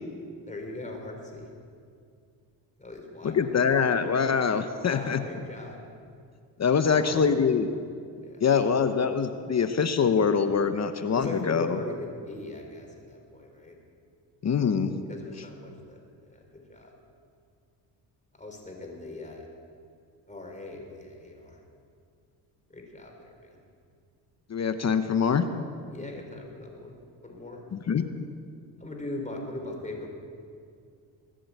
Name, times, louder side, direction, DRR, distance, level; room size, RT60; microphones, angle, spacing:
voice 1, 0.5-1.5 2.8-3.7 4.8-5.8 6.8-7.4 8.2-8.8 11.1-13.8 15.1-16.0 16.3-16.9 18.3-19.4 20.3-21.6 22.7-23.6 25.9-27.6 28.8-30.1, left 2 dB, 15° left, 2 dB, 3.8 m, -40 dB
voice 2, 3.2-5.2 6.6-7.7 8.4-11.8 14.4-15.0 24.5-25.4 27.7-28.0, left 6 dB, 40° left, 9 dB, 0.9 m, -24 dB
21.5 x 7.7 x 8.1 m, 2.3 s
cardioid pair, 85°, 42 cm